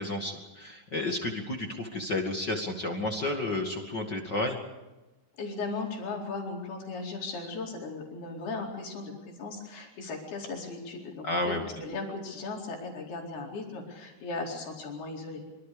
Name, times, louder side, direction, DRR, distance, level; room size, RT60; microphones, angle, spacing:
voice 1, 0.0-4.6 11.2-11.6, left 2 dB, 35° left, 3 dB, 2.1 m, -31 dB
voice 2, 5.4-15.4, left 3 dB, 90° left, 0 dB, 6.4 m, -37 dB
26.0 x 25.0 x 5.1 m, 1.1 s
omnidirectional pair, 4.4 m